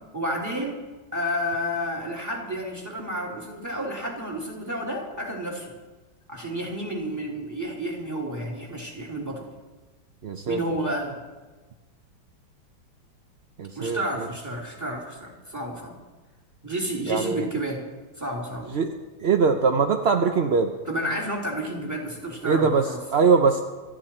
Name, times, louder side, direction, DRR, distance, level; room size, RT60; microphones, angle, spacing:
voice 1, 0.1-0.8 1.1-5.7 6.3-9.5 10.5-11.2 13.7-16.0 16.6-17.8 18.2-18.7 20.9-23.0, equal, 10° right, -2 dB, 3.1 m, -31 dB
voice 2, 10.2-10.6 13.6-14.3 17.1-17.5 18.7-18.9 19.2-20.7 22.4-23.6, right 5 dB, 55° right, 5 dB, 0.7 m, -22 dB
28.0 x 10.5 x 4.4 m, 1.2 s
omnidirectional pair, 2.0 m